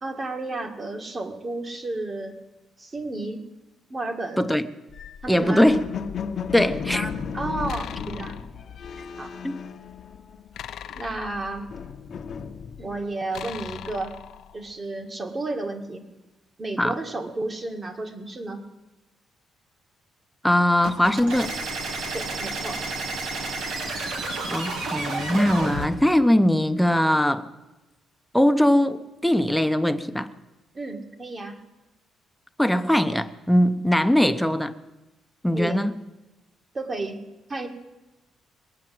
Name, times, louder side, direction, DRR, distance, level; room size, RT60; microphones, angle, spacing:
voice 1, 0.0-2.4 2.8-3.4 3.9-4.5 5.2-5.7 6.6-8.4 9.2-9.3 11.0-11.7 12.8-14.2 14.5-16.1 16.6-18.6 22.1-22.8 30.7-31.6 35.5-35.9 36.7-37.2 37.5-37.7, right 2 dB, 30° right, 5 dB, 2.1 m, -32 dB
sound 1, 4.9-10.5 10.8-13.1, left 7 dB, 55° left, 1.0 m, -35 dB
voice 2, 5.3-5.8 6.5-7.0 9.4-9.6 16.8-16.9 20.4-21.5 24.5-27.5 28.3-30.3 32.6-34.7 35.4-35.9, left 1 dB, ahead, 9 dB, 0.9 m, -21 dB
sound 2, 7.7-8.6 10.5-12.1 13.3-14.8, left 10 dB, 75° left, 0.8 m, -40 dB
sound 3, 20.8-25.9, right 3 dB, 80° right, 2.7 m, -30 dB
20.5 x 8.9 x 7.8 m, 1.1 s
cardioid pair, 90°, 0 cm